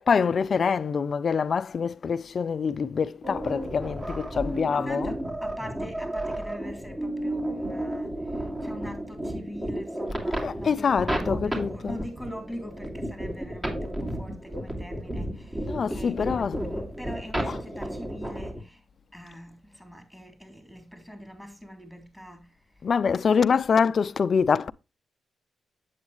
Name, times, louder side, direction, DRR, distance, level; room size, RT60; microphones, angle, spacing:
voice 1, 0.0-5.2 10.4-12.0 15.7-16.8 17.5-17.6 22.8-24.7, left 6 dB, 55° left, 0.4 m, -25 dB
sound 1, 3.2-18.6, right 1 dB, 25° right, 2.6 m, -32 dB
voice 2, 4.7-18.8 19.1-22.8, equal, 5° right, 3.3 m, -43 dB
8.2 x 8.0 x 3.1 m
cardioid pair, 70°, 0 cm